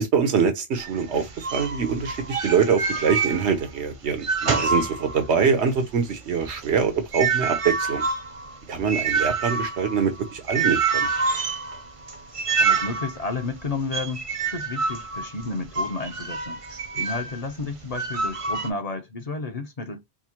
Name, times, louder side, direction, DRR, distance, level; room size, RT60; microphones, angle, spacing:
voice 1, 0.0-8.0 8.7-11.1, right 6 dB, 90° right, 1.2 m, -24 dB
sound 1, 0.8-3.8 4.1-5.5 5.9-17.4 17.9-18.7, right 4 dB, 40° right, 0.5 m, -27 dB
voice 2, 12.6-16.6 16.9-20.0, left 3 dB, 40° left, 0.8 m, -32 dB
4.8 x 2.1 x 2.9 m
omnidirectional pair, 1.1 m